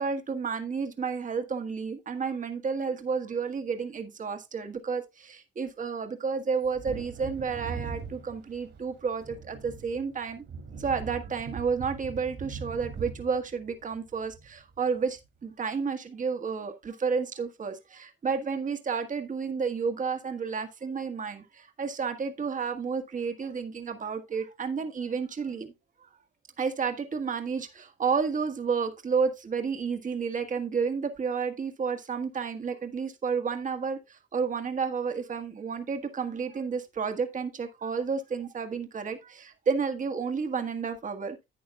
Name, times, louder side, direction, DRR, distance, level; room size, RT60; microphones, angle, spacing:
voice 1, 0.0-10.4 10.8-25.7 26.0-26.1 26.6-41.4, right 5 dB, 40° right, 1.5 m, -31 dB
Wind / Thunder, 6.6-14.9 15.2-15.3, right 5 dB, 60° right, 2.7 m, -41 dB
11.0 x 8.5 x 2.4 m
cardioid pair, 90°, 20 cm